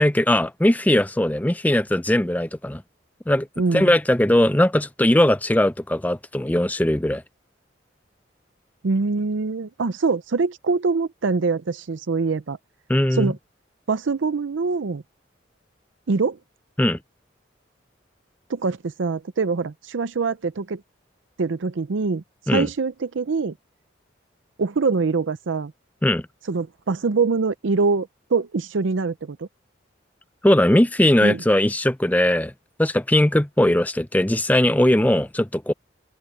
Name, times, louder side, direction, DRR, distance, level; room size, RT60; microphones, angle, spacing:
voice 1, 0.0-2.8 3.3-3.5 3.7-7.2 12.9-13.3 16.8-17.0 22.5-22.7 26.0-26.2 30.4-32.5 32.8-35.7, left 1 dB, 10° left, 0.5 m, -19 dB
voice 2, 3.6-3.9 8.8-12.6 13.1-13.4 13.9-15.0 16.1-16.4 18.5-20.8 21.4-22.2 22.5-23.5 24.6-25.7 26.5-29.5 31.2-31.4, right 4 dB, 75° right, 0.5 m, -24 dB
open air
head